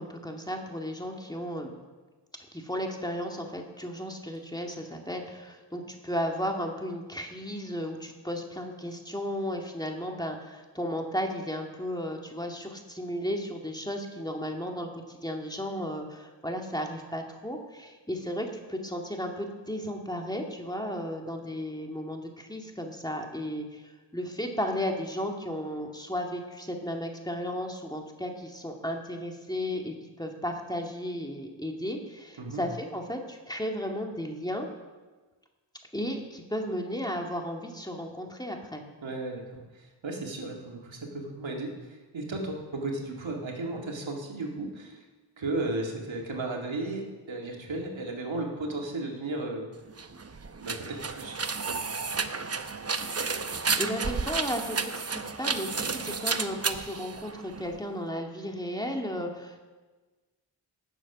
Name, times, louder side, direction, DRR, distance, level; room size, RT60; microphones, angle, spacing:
voice 1, 0.0-1.7 2.5-34.7 35.9-38.8 53.0-59.6, equal, 10° left, 2 dB, 2.1 m, -34 dB
voice 2, 39.0-45.0 45.4-49.7 50.6-51.4 51.7-51.8, right 2 dB, 80° right, 0 dB, 2.1 m, -35 dB
sound 1, 49.9-57.8, right 4 dB, 35° right, 0.8 m, -32 dB
17.0 x 7.1 x 6.0 m, 1.3 s
cardioid pair, 45°, 45 cm